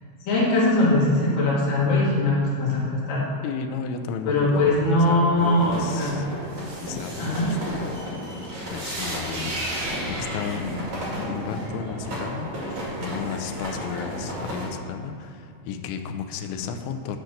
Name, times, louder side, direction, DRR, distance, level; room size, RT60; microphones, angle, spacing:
voice 1, 0.2-3.2 4.2-6.1 7.2-7.5, left 2 dB, 55° left, -6 dB, 2.9 m, -21 dB
voice 2, 3.4-6.3 6.8-7.9 8.7-10.9 11.3-17.2, left 6 dB, 85° left, 6 dB, 2.7 m, -33 dB
sound 1, 5.4-14.6, equal, 60° right, 1.2 m, -32 dB
10.0 x 4.5 x 6.4 m, 2.6 s
omnidirectional pair, 5.8 m